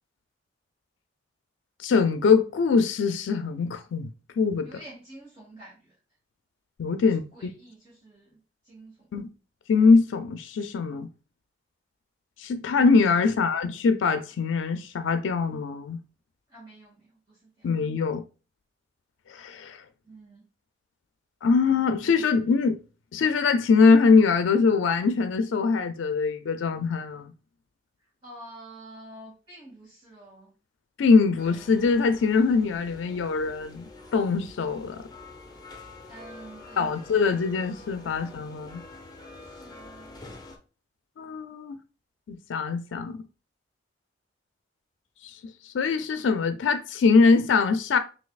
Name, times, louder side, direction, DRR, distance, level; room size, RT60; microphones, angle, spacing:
voice 1, 1.8-4.1 4.4-4.7 6.8-7.5 9.1-9.3 9.7-11.1 12.4-16.0 17.6-18.2 19.3-19.8 21.4-22.8 23.1-27.3 31.0-35.0 36.8-38.8 41.2-41.8 42.3-43.2 45.2-48.0, left 4 dB, 90° left, 0.4 m, -23 dB
voice 2, 4.6-5.9 7.0-8.4 8.6-9.1 13.3-13.6 16.5-17.7 20.0-20.4 28.0-30.5 36.1-37.1 39.4-40.2, right 1 dB, 25° right, 1.8 m, -48 dB
sound 1, 31.4-40.6, left 2 dB, 20° left, 0.7 m, -46 dB
6.3 x 2.7 x 2.3 m
head